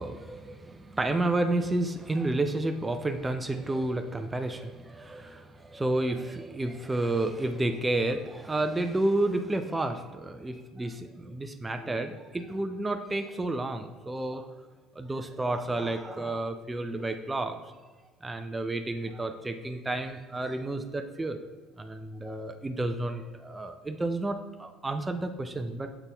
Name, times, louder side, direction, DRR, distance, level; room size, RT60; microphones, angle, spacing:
voice 1, 0.0-14.5 15.0-17.6 18.2-21.4 21.8-25.9, right 2 dB, 15° right, 7 dB, 0.4 m, -31 dB
6.9 x 4.1 x 3.4 m, 1.4 s
hypercardioid pair, 60°, 0 cm